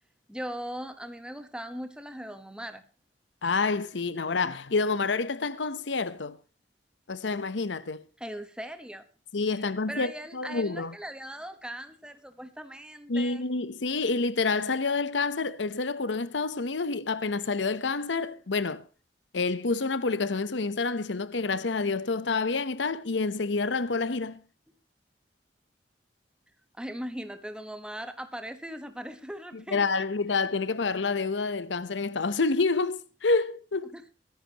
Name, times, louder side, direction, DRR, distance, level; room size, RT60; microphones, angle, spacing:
voice 1, 0.3-2.8 8.2-9.0 9.9-13.4 26.8-30.0 33.9-34.1, equal, 5° right, 1.1 m, -39 dB
voice 2, 3.4-6.4 7.1-8.0 9.3-11.0 13.1-18.8 19.3-24.4 29.5-33.9, left 4 dB, 85° left, 0.9 m, -28 dB
22.5 x 10.5 x 2.9 m
head